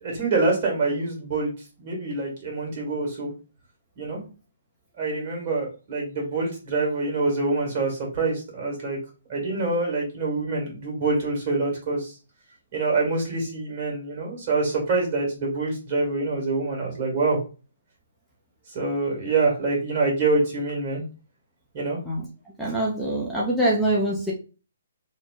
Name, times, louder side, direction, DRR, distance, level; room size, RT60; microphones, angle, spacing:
voice 1, 0.0-1.5 1.8-3.3 4.0-4.2 5.0-9.0 9.3-12.1 12.7-17.4 18.7-21.0 21.7-22.0, right 3 dB, 45° right, -1 dB, 1.6 m, -25 dB
voice 2, 22.6-24.3, right 1 dB, ahead, -7 dB, 0.5 m, -24 dB
2.9 x 2.0 x 3.6 m, 0.34 s
hypercardioid pair, 140°, 0 cm